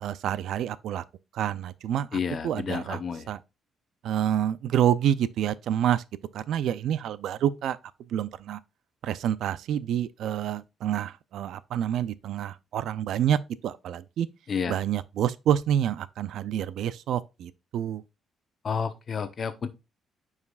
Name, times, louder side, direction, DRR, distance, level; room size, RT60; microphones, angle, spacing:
voice 1, 0.0-1.0 1.3-3.0 3.3-3.4 4.0-6.0 6.3-7.8 8.1-8.6 9.0-14.3 14.7-18.0, right 10 dB, 75° right, 0.4 m, -28 dB
voice 2, 2.1-3.3 14.5-14.8 18.6-19.7, left 6 dB, 50° left, 0.9 m, -30 dB
9.5 x 4.8 x 2.4 m
cardioid pair, 90°, 0 cm